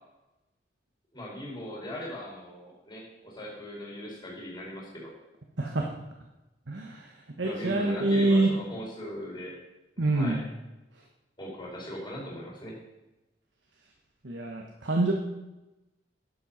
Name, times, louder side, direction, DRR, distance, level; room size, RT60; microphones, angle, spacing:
voice 1, 1.1-5.1 7.4-9.5 10.0-10.4 11.4-12.7, equal, 25° left, -3 dB, 4.7 m, -39 dB
voice 2, 6.7-7.1 7.4-8.5 10.0-10.4 14.2-15.1, right 2 dB, 85° right, 0 dB, 1.4 m, -26 dB
11.0 x 7.9 x 5.8 m, 1.0 s
head